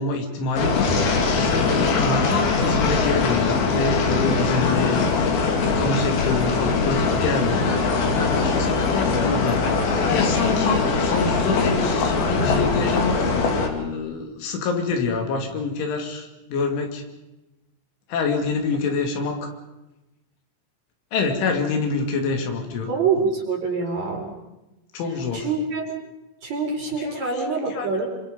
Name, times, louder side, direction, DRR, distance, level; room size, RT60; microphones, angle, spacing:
voice 1, 0.0-5.2 5.6-7.6 8.2-13.3 13.6-17.0 18.1-19.5 21.1-22.9 24.9-25.5 27.0-28.1, left 4 dB, 85° left, 4 dB, 5.1 m, -27 dB
sound 1, 0.6-13.7, left 4 dB, 60° left, 4.0 m, -21 dB
voice 2, 22.9-24.3 25.3-25.9 26.4-28.1, right 4 dB, 40° right, 0 dB, 4.9 m, -25 dB
27.0 x 25.5 x 5.4 m, 1.0 s
omnidirectional pair, 5.3 m